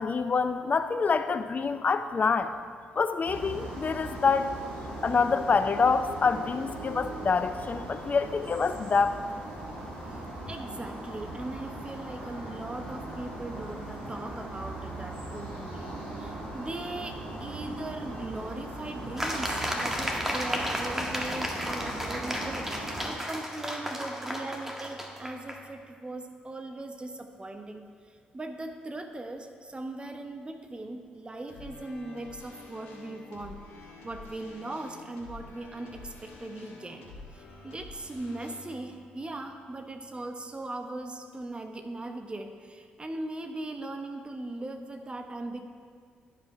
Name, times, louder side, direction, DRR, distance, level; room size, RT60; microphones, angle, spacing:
voice 1, 0.0-2.5 2.9-4.5 5.0-9.2, left 5 dB, 40° left, 10 dB, 0.6 m, -26 dB
sound 1, 3.2-23.1, right 1 dB, 90° right, 2.4 m, -39 dB
voice 2, 10.1-33.6 34.0-37.1 37.3-45.6, right 2 dB, 25° right, 6 dB, 1.0 m, -39 dB
sound 2, 19.2-25.6, equal, 10° right, 1.4 m, -33 dB
sound 3, 31.5-40.6, left 3 dB, 75° left, 1.7 m, -49 dB
11.0 x 5.2 x 4.8 m, 2.1 s
hypercardioid pair, 45°, 4 cm